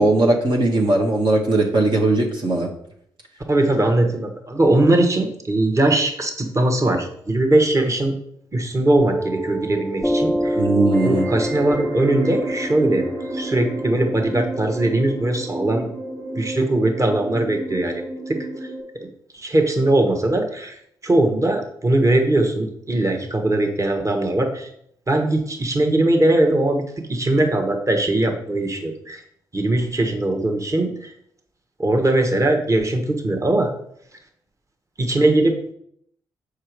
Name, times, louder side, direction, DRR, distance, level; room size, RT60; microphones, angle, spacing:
voice 1, 0.0-2.7 10.6-11.3, right 2 dB, 50° right, -1 dB, 1.4 m, -18 dB
voice 2, 3.5-8.1 8.5-10.6 11.0-13.1 13.3-15.8 16.3-18.4 19.3-20.8 21.0-24.7 25.1-26.8 27.1-29.2 29.5-31.1 31.8-33.7 35.0-35.7, right 1 dB, 30° right, 3 dB, 1.6 m, -20 dB
Piano, 9.0-16.1, equal, ahead, 0.4 m, -28 dB
sound 1, 10.8-18.8, right 1 dB, 85° right, 2.2 m, -32 dB
6.5 x 5.2 x 4.6 m, 0.69 s
hypercardioid pair, 40°, 10 cm